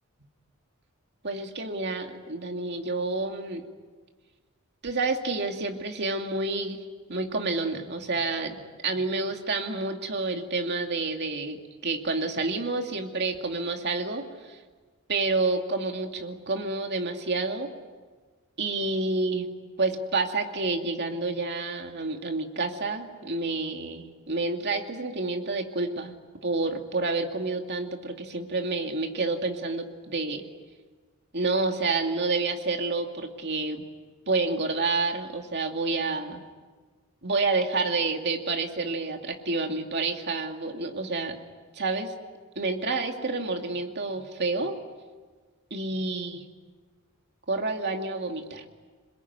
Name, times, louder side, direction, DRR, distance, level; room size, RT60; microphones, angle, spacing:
voice 1, 1.2-3.6 4.8-6.8 7.1-14.6 15.1-17.7 18.6-19.5 19.8-26.1 26.4-30.4 31.3-33.8 34.3-36.4 37.2-41.4 41.7-42.1 42.6-44.8 45.7-46.5 47.5-48.6, right 3 dB, 50° right, 3 dB, 2.5 m, -29 dB
27.5 x 21.5 x 9.6 m, 1.4 s
head